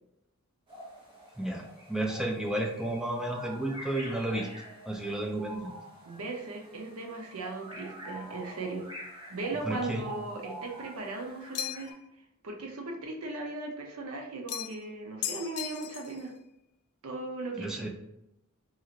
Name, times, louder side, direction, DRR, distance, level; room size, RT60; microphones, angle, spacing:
sound 1, 0.7-11.9, right 1 dB, 25° right, 0.9 m, -46 dB
voice 1, 1.4-4.5 4.9-5.7 9.6-10.0 17.6-17.9, right 1 dB, ahead, 1 dB, 0.4 m, -32 dB
voice 2, 6.1-8.9 9.3-11.9 12.4-16.3 17.0-17.9, right 2 dB, 70° right, 2 dB, 0.6 m, -38 dB
sound 2, 11.5-12.0 14.5-14.9 15.2-16.2, left 11 dB, 80° left, 0.3 m, -36 dB
2.7 x 2.4 x 2.9 m, 0.85 s
head